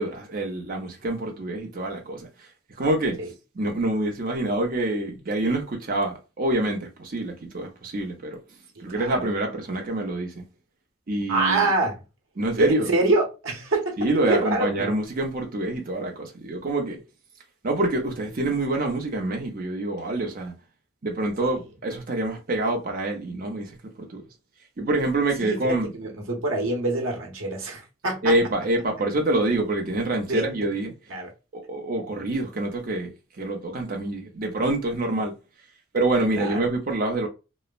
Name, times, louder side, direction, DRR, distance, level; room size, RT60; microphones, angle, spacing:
voice 1, 0.0-2.5 2.8-3.2 3.5-8.4 8.8-10.4 11.1-11.7 12.4-12.9 14.0-17.0 17.6-20.5 21.0-24.2 24.8-25.9 28.2-30.9 31.5-35.3 35.9-37.3, right 2 dB, 45° right, 0.6 m, -26 dB
voice 2, 8.8-9.3 11.3-12.0 12.6-14.0 14.3-14.9 21.4-21.5 25.4-28.3 30.3-30.5 31.1-31.3 36.3-36.6, right 2 dB, 75° right, 0.9 m, -25 dB
3.0 x 2.1 x 2.4 m
head